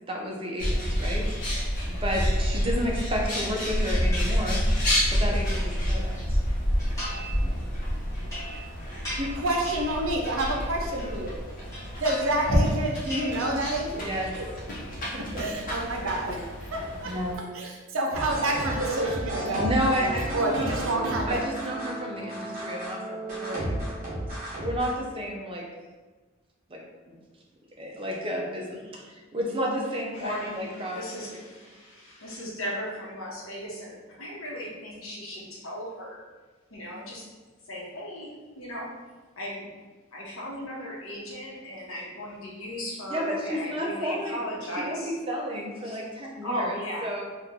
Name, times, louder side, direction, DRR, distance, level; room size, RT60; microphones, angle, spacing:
voice 1, 0.0-1.6 1.9-4.6 5.1-6.4 7.4-7.6 14.0-14.3 15.1-15.4 17.0-17.4 19.6-20.8 21.3-25.6 26.7-26.8 27.1-27.2 27.8-31.0 43.1-47.2, equal, 25° right, -1 dB, 0.5 m, -32 dB
Bird, 0.6-17.4, equal, 40° left, 0.8 m, -28 dB
sound 1, 4.1-4.8 5.2-6.3 6.8-7.4 7.7-11.3 11.6-12.6 12.9-14.0 14.3-14.9, equal, 15° left, 1.3 m, -39 dB
voice 2, 9.2-11.3 12.0-14.1 14.4-14.5 15.4-16.4 16.7-17.1 17.5-19.7 20.3-21.4, right 1 dB, 75° right, 0 dB, 0.6 m, -28 dB
sound 2, 18.1-25.0, right 1 dB, 40° right, 1.0 m, -33 dB
voice 3, 30.1-36.2 36.7-37.2 37.7-38.3 38.6-38.9 39.4-39.7 40.1-45.1 45.8-46.0 46.4-47.1, equal, 80° left, -4 dB, 0.9 m, -36 dB
2.9 x 2.3 x 3.7 m, 1.3 s
head